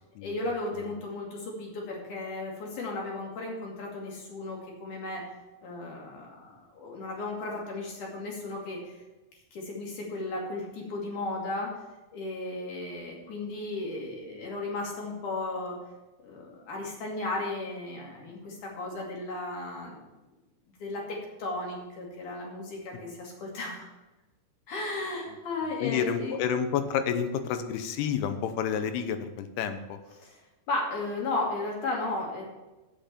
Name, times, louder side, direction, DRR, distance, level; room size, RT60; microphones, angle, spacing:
voice 1, 0.2-5.2 5.6-9.0 9.5-11.7 12.1-15.8 16.2-20.0 20.8-23.9 24.7-26.3 30.2-30.4 30.7-32.4, left 2 dB, 55° left, -2 dB, 3.7 m, -35 dB
voice 2, 25.8-30.0, left 8 dB, 85° left, 9 dB, 2.9 m, -29 dB
8.8 x 7.9 x 6.9 m, 1.1 s
omnidirectional pair, 4.5 m